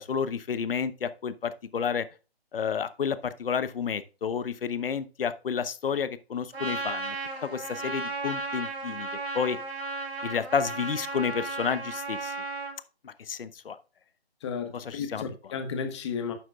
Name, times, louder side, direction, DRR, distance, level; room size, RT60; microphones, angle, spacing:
voice 1, 0.0-2.1 2.5-7.2 7.4-9.1 9.3-9.6 10.2-12.3 13.0-13.8 14.7-15.3, left 6 dB, 60° left, 0.9 m, -30 dB
Trumpet, 6.5-12.8, right 3 dB, 80° right, 4.2 m, -35 dB
voice 2, 14.4-16.3, left 6 dB, 25° left, 1.4 m, -33 dB
11.0 x 7.3 x 2.4 m
hypercardioid pair, 155°, 31 cm